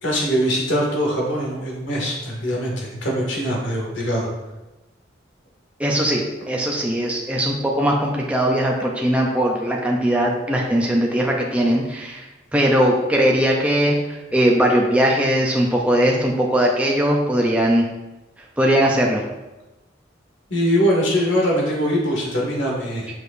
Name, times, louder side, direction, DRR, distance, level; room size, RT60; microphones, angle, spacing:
voice 1, 0.0-4.3 20.5-23.1, equal, 90° left, -2 dB, 2.2 m, -22 dB
voice 2, 5.8-12.2 12.5-17.9 18.6-19.2, equal, 5° right, -2 dB, 0.6 m, -19 dB
7.0 x 6.3 x 2.6 m, 1.1 s
head